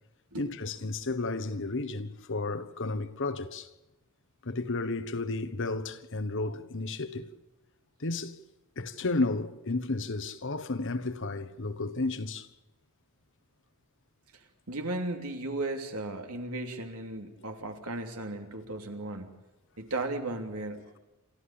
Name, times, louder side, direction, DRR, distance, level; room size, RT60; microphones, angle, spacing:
voice 1, 0.3-3.7 4.4-7.3 8.0-8.4 8.8-12.5, left 3 dB, 60° left, 1.3 m, -32 dB
voice 2, 14.7-19.3 19.8-20.9, right 2 dB, 80° right, 3.1 m, -35 dB
28.5 x 13.5 x 8.8 m
head